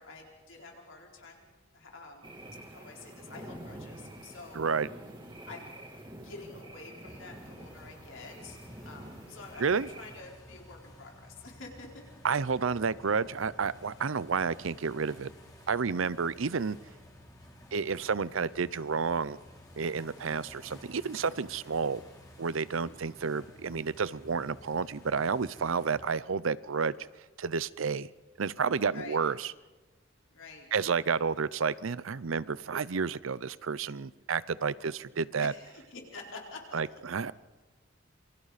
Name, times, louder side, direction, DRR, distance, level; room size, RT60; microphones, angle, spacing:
voice 1, 0.0-1.5 1.7-2.3 2.7-4.6 5.5-5.7 6.2-8.6 8.8-12.0 22.8-23.0 28.9-29.2 30.3-30.7 35.4-36.8, left 3 dB, 75° left, 0 dB, 4.4 m, -48 dB
sound 1, 2.2-10.2, right 1 dB, 25° right, 2.8 m, -47 dB
voice 2, 4.5-4.9 9.6-9.9 12.2-15.3 15.7-16.8 17.7-19.4 19.8-22.0 22.4-26.9 27.4-28.1 28.4-29.5 30.7-35.5 36.7-37.3, right 5 dB, 80° right, 18 dB, 0.6 m, -30 dB
sound 2, 7.0-26.0, equal, 20° left, 3.4 m, -53 dB
27.0 x 24.5 x 4.2 m, 1.2 s
head